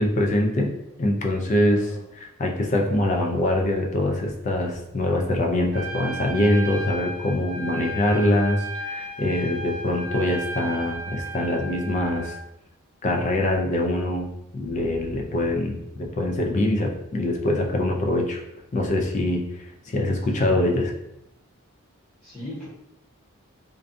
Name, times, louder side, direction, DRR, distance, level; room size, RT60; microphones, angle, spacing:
voice 1, 0.0-12.4 13.0-14.3 14.5-18.4 18.7-20.9, left 1 dB, 35° left, 2 dB, 0.3 m, -24 dB
voice 2, 1.7-2.0 19.9-20.2 20.4-20.6 22.2-22.7, left 1 dB, 5° left, -11 dB, 0.8 m, -38 dB
Trumpet, 5.7-12.4, right 1 dB, 80° right, 0.4 m, -34 dB
2.5 x 2.2 x 2.5 m, 0.84 s
head